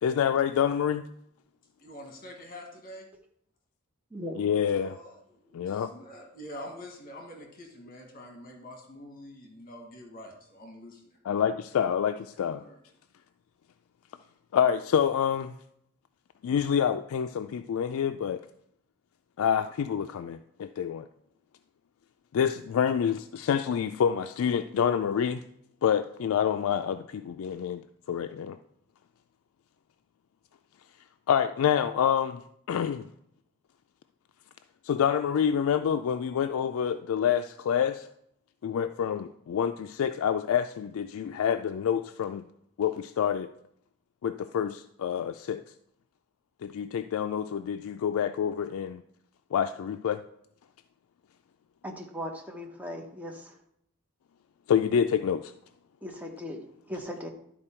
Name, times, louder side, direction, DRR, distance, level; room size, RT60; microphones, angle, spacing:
voice 1, 0.0-1.1 4.3-5.0 5.5-5.9 11.2-12.6 14.5-15.5 16.4-18.4 19.4-21.1 22.3-25.4 25.8-27.8 28.1-28.6 31.3-32.4 32.7-33.1 34.8-38.1 38.6-42.4 42.8-43.5 44.2-45.6 46.6-49.0 49.5-50.2 54.7-55.5, left 8 dB, 70° left, 0.3 m, -27 dB
voice 2, 1.8-3.1 4.6-11.2 12.6-12.8, left 1 dB, 45° left, 1.4 m, -46 dB
voice 3, 51.8-53.4 56.0-57.3, equal, 5° right, 1.0 m, -38 dB
11.5 x 4.4 x 4.4 m
head